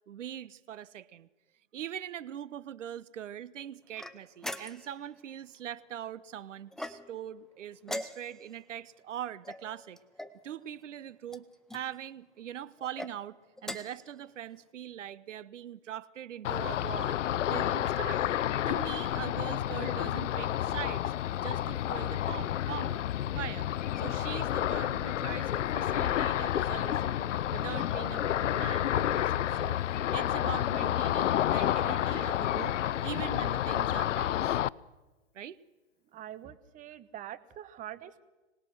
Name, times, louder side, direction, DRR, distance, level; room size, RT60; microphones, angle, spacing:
voice 1, 0.1-1.3 1.7-10.0 10.4-11.5 11.7-13.4 13.6-17.2 17.5-18.2 18.7-21.1 21.4-23.1 23.3-29.8 30.1-34.6 35.3-35.6, right 10 dB, 85° right, 18 dB, 1.0 m, -42 dB
sound 1, 4.0-5.0 6.7-7.3 7.8-8.6 9.4-10.4 11.3-11.8 12.8-13.1 13.6-14.1, left 1 dB, ahead, 0.7 m, -41 dB
Ocean, 16.4-34.7, left 12 dB, 85° left, 0.6 m, -30 dB
voice 2, 36.1-38.2, right 11 dB, 20° right, 14 dB, 1.0 m, -44 dB
25.5 x 19.5 x 6.3 m, 1.2 s
hypercardioid pair, 130°, 36 cm